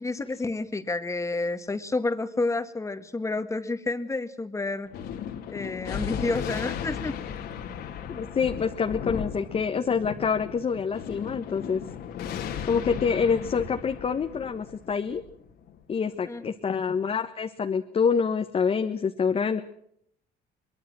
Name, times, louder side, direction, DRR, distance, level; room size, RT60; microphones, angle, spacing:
voice 1, 0.0-4.9 5.5-7.1 16.3-16.4, left 3 dB, 15° left, 9 dB, 2.0 m, -29 dB
Thunder, 4.9-15.8, left 8 dB, 75° left, 3.0 m, -36 dB
voice 2, 8.1-11.8 12.6-15.2 15.9-19.6, left 6 dB, 35° left, 5 dB, 1.4 m, -26 dB
24.5 x 22.0 x 6.3 m, 0.70 s
cardioid pair, 110°, 17 cm